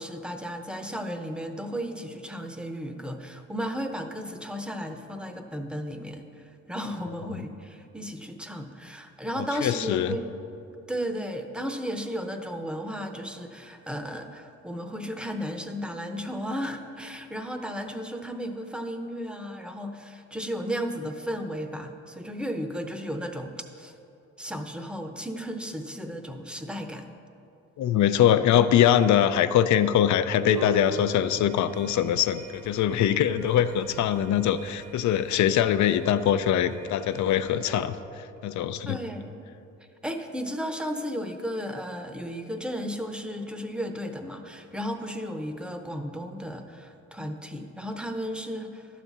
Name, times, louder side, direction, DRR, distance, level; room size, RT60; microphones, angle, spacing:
voice 1, 0.0-6.2 6.7-10.3 10.9-23.9 24.4-27.0 38.9-39.4 40.0-48.9, equal, 5° right, 5 dB, 0.7 m, -34 dB
voice 2, 9.4-10.2 27.8-39.0, left 10 dB, 70° left, 12 dB, 0.5 m, -23 dB
sound 1, 30.4-37.9, right 5 dB, 85° right, 0.9 m, -41 dB
11.5 x 4.1 x 7.2 m, 2.7 s
cardioid pair, 90°, 30 cm